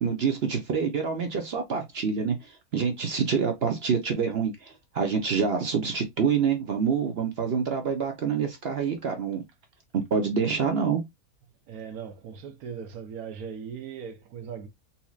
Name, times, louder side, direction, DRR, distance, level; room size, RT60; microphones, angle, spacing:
voice 1, 0.0-9.4 10.1-11.0, right 6 dB, 55° right, 0.8 m, -27 dB
voice 2, 11.7-14.7, right 7 dB, 75° right, 1.2 m, -39 dB
4.1 x 2.9 x 2.3 m
omnidirectional pair, 1.6 m